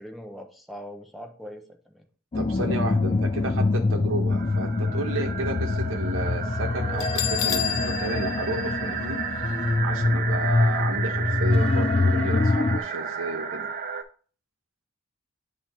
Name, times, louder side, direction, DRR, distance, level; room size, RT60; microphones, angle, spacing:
voice 1, 0.0-2.1 6.8-7.0, equal, ahead, 4 dB, 0.7 m, -42 dB
sound 1, 2.3-12.8, left 2 dB, 30° left, 0.3 m, -25 dB
voice 2, 2.3-9.2 9.8-13.7, right 1 dB, 85° right, 3 dB, 1.1 m, -32 dB
sound 2, 4.3-14.0, right 7 dB, 45° right, 0.5 m, -33 dB
Bell, 7.0-9.7, left 11 dB, 85° left, 0.7 m, -31 dB
9.1 x 3.1 x 4.3 m, 0.43 s
head